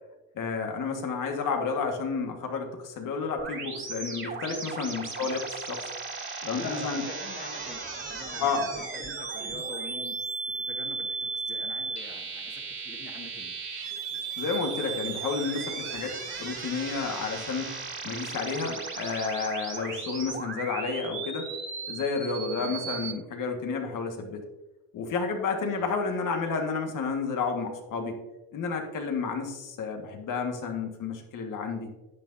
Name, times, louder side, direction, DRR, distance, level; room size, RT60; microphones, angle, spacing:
voice 1, 0.4-5.9 6.4-7.0 8.4-8.7 14.4-16.1 16.4-17.7 18.0-21.5 21.9-24.4 24.9-28.2 28.5-31.9, left 5 dB, 50° left, 3 dB, 1.9 m, -31 dB
sound 1, 3.4-23.1, right 4 dB, 30° right, 2.5 m, -36 dB
voice 2, 6.5-10.2 10.5-13.5 22.6-22.8 25.7-25.9, left 3 dB, 25° left, 2 dB, 2.0 m, -44 dB
10.5 x 8.5 x 2.8 m, 1.1 s
cardioid pair, 110°, 39 cm